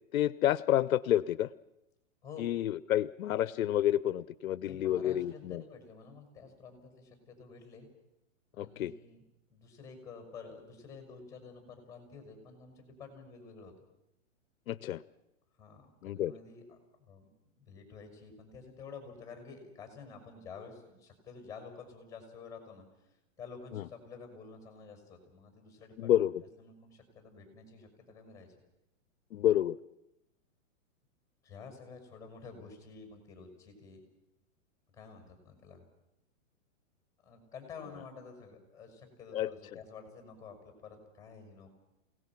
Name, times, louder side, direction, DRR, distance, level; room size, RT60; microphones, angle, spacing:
voice 1, 0.1-1.5 2.4-5.6 8.6-8.9 14.7-15.0 16.0-16.3 23.7-23.8 26.0-26.3 29.3-29.8 39.3-39.5, left 12 dB, 75° left, 18 dB, 0.7 m, -29 dB
voice 2, 4.6-7.9 8.5-9.2 9.5-13.7 15.6-26.3 26.6-28.5 31.4-34.0 34.9-35.8 37.2-41.7, left 5 dB, 5° left, 5 dB, 5.7 m, -50 dB
28.5 x 18.0 x 6.0 m, 0.89 s
hypercardioid pair, 160°, 41 cm